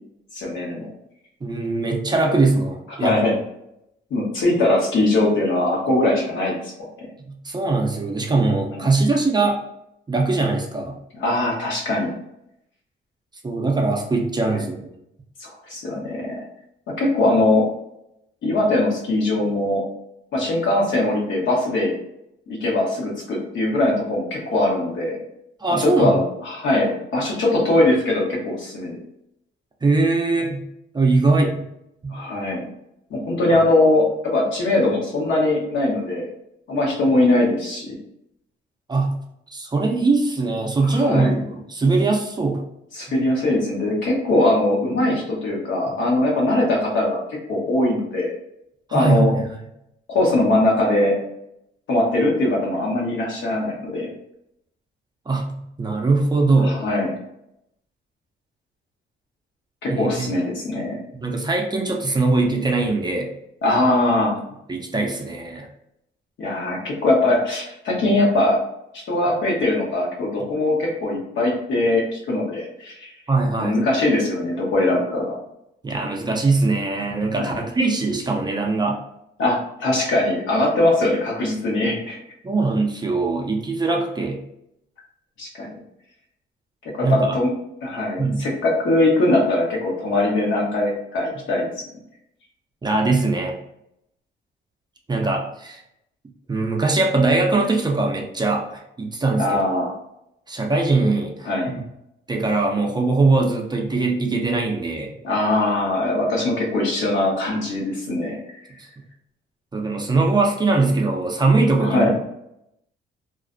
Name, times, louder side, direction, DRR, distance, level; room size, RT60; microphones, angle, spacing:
voice 1, 0.3-0.9 3.0-3.3 4.1-7.1 8.7-8.9 11.2-12.1 14.5-14.6 15.4-16.4 16.9-17.6 18.4-19.8 20.3-21.9 22.5-25.2 25.8-29.0 32.1-32.6 33.1-36.3 36.7-38.0 40.8-41.3 42.9-48.3 48.9-49.3 50.1-51.1 51.9-54.1 56.6-57.2 59.8-61.0 63.6-64.4 66.4-68.6 69.1-73.1 73.6-75.4 77.3-77.6 79.4-82.2 85.4-85.7 86.8-87.5 87.8-91.9 99.4-99.9 101.4-101.8 105.2-108.4 111.8-112.1, left 2 dB, 70° left, -2 dB, 0.9 m, -21 dB
voice 2, 1.4-3.2 7.3-9.6 10.1-10.9 13.4-14.8 25.6-26.2 29.8-30.6 30.9-31.7 32.0-32.2 38.9-39.2 39.5-42.6 48.9-49.4 55.3-56.7 59.9-60.3 61.1-63.3 64.7-65.7 73.3-73.8 75.8-79.0 82.4-84.4 87.0-87.4 88.2-88.4 92.8-93.6 95.1-95.8 96.5-99.6 100.5-101.5 102.3-105.1 109.7-112.1, right 3 dB, 20° right, 0 dB, 0.4 m, -21 dB
2.4 x 2.1 x 2.5 m, 0.80 s
cardioid pair, 90°, 20 cm